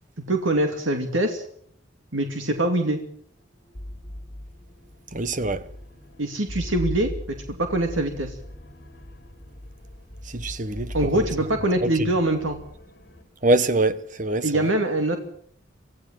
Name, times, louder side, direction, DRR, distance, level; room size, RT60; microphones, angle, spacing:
voice 1, 0.3-1.4 2.1-3.0 6.2-7.1 7.6-8.4 10.9-12.6 14.4-15.2, right 1 dB, 80° right, 2.5 m, -23 dB
sound 1, 3.4-13.2, left 1 dB, 50° left, 4.8 m, -39 dB
voice 2, 5.1-5.6 10.3-10.9 13.4-14.5, right 2 dB, 40° right, 1.1 m, -23 dB
24.5 x 15.5 x 7.5 m
head